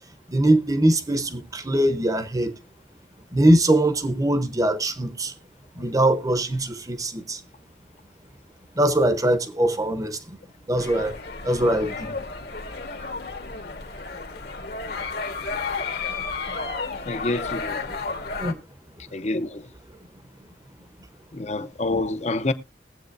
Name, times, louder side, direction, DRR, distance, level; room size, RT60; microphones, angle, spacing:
voice 1, 0.3-2.6 3.3-5.3 5.8-7.4 8.8-10.2 10.7-11.2 11.4-12.2 18.4-18.6, right 1 dB, 20° right, 0.8 m, -22 dB
sound 1, 10.8-18.5, left 4 dB, 60° left, 1.5 m, -32 dB
voice 2, 17.1-17.9 19.1-19.7 21.3-22.5, left 2 dB, 35° left, 0.7 m, -27 dB
20.5 x 8.0 x 2.6 m
head